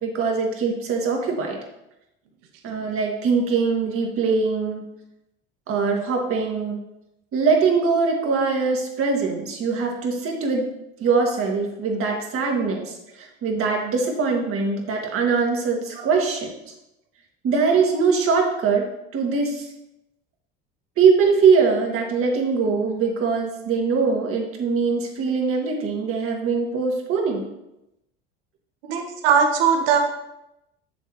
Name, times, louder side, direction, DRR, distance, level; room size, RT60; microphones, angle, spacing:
voice 1, 0.0-1.6 2.6-4.8 5.7-6.8 7.3-10.7 11.0-16.5 17.4-18.9 19.1-19.7 21.0-27.5, right 5 dB, 50° right, 1 dB, 1.9 m, -22 dB
voice 2, 28.9-30.0, right 6 dB, 75° right, 4 dB, 1.2 m, -19 dB
7.0 x 7.0 x 3.1 m, 0.87 s
hypercardioid pair, 80°, 29 cm